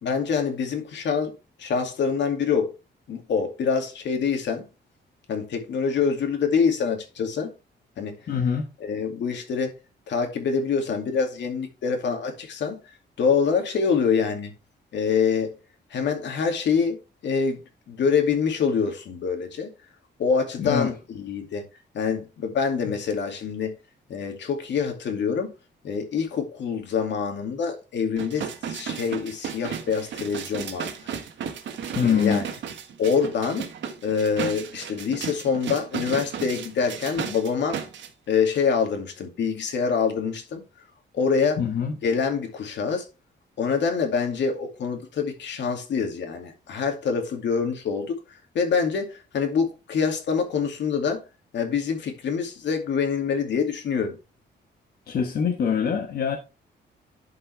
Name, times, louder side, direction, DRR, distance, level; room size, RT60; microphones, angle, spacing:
voice 1, 0.0-1.3 1.6-2.7 3.1-4.7 5.3-7.5 8.0-8.2 8.8-9.8 10.1-12.8 13.2-14.5 14.9-15.6 15.9-17.0 17.2-17.6 17.9-19.7 20.2-21.6 21.9-23.7 24.1-25.5 25.8-30.9 32.0-32.4 33.0-33.7 34.0-37.8 38.3-40.6 41.1-41.6 42.0-43.1 43.6-48.2 48.5-51.2 51.5-54.2, left 6 dB, 75° left, 2.4 m, -25 dB
voice 2, 8.3-8.7 20.6-20.9 22.8-22.9 31.9-32.5 41.6-41.9 55.1-56.4, left 7 dB, 55° left, 1.2 m, -24 dB
sound 1, 28.2-38.1 38.5-38.6, right 7 dB, 85° right, 1.4 m, -34 dB
11.5 x 5.5 x 3.4 m
wide cardioid pair, 150°, 19 cm